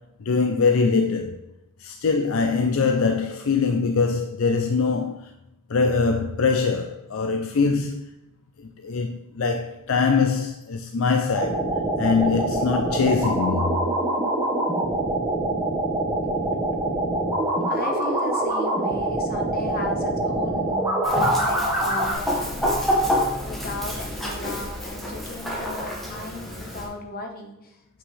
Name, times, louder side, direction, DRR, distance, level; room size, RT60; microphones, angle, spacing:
voice 1, 0.3-1.4 1.8-5.2 5.7-8.0 8.8-11.6 12.0-13.7, left 4 dB, 70° left, 0.5 m, -22 dB
sound 1, 11.3-22.1, right 1 dB, 15° right, 1.5 m, -25 dB
voice 2, 17.7-27.7, left 2 dB, 45° left, 1.1 m, -36 dB
Chicken rooster, 21.0-26.9, equal, ahead, 1.6 m, -27 dB
7.5 x 5.7 x 3.3 m
head